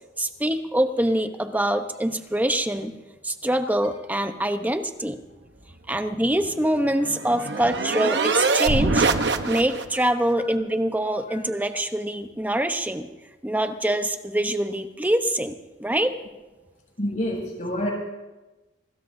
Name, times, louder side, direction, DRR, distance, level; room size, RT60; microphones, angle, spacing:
voice 1, 0.2-2.9 3.2-5.2 5.9-9.1 9.5-13.1 13.4-15.5 15.8-16.1, right 1 dB, 10° right, 8 dB, 0.9 m, -24 dB
sound 1, 6.4-10.1, right 3 dB, 70° right, 1.0 m, -24 dB
voice 2, 17.0-17.9, equal, 45° left, -3 dB, 7.1 m, -28 dB
24.0 x 20.5 x 2.7 m, 1.1 s
head